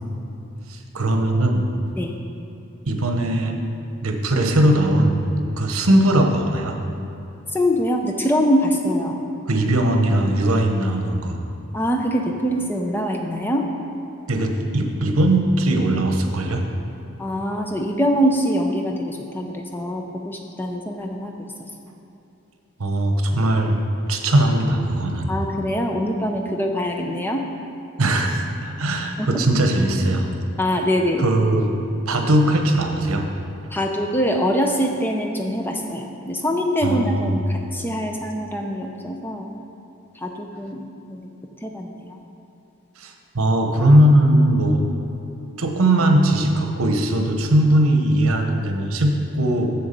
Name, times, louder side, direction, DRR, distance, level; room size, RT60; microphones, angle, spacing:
voice 1, 0.7-1.6 2.9-3.6 4.0-5.2 5.6-6.8 9.5-11.4 14.3-16.6 22.8-23.8 24.1-25.3 28.0-30.3 31.2-31.7 32.1-33.3 36.8-37.4 43.0-44.8 45.6-49.7, right 1 dB, 80° right, 4 dB, 0.9 m, -19 dB
voice 2, 7.5-9.2 11.7-13.6 17.2-21.3 25.3-27.4 29.2-29.5 30.6-31.3 33.7-39.5 40.2-41.3 41.6-42.2, equal, 10° left, 2 dB, 0.6 m, -23 dB
7.2 x 7.0 x 5.2 m, 2.9 s
head